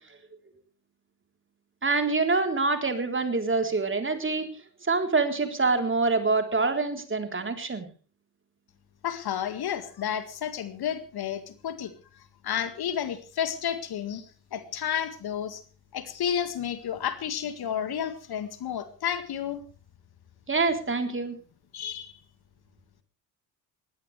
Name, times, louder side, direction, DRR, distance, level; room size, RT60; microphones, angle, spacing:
voice 1, 1.8-4.5 4.9-7.9 20.5-21.4, right 3 dB, 25° right, 6 dB, 3.7 m, -25 dB
voice 2, 9.0-11.9 12.4-14.3 14.5-15.6 15.9-19.6 21.7-22.1, left 9 dB, 50° left, 12 dB, 2.0 m, -31 dB
21.0 x 16.5 x 3.3 m, 0.37 s
figure-of-eight pair, 50°, 50 cm